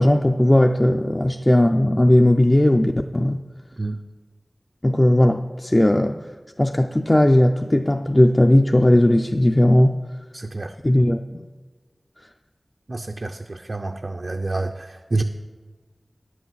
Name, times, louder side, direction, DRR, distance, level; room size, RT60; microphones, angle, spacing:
voice 1, 0.0-3.4 4.8-6.2 6.6-10.0 10.8-11.4, left 1 dB, 25° left, 0.4 m, -17 dB
voice 2, 10.3-10.8 12.9-15.2, right 2 dB, 60° right, 0.5 m, -28 dB
10.5 x 6.3 x 7.3 m
wide cardioid pair, 60°, 0 cm